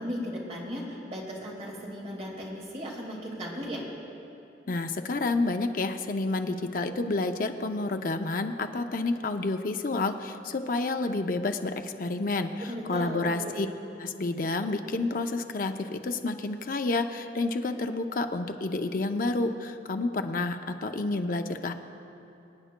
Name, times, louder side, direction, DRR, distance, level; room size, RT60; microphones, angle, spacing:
voice 1, 0.0-3.8 12.6-13.5, equal, 35° right, -2 dB, 1.9 m, -36 dB
voice 2, 4.7-13.7 14.0-21.7, left 3 dB, 45° left, 6 dB, 0.5 m, -29 dB
25.5 x 9.1 x 2.2 m, 2.8 s
head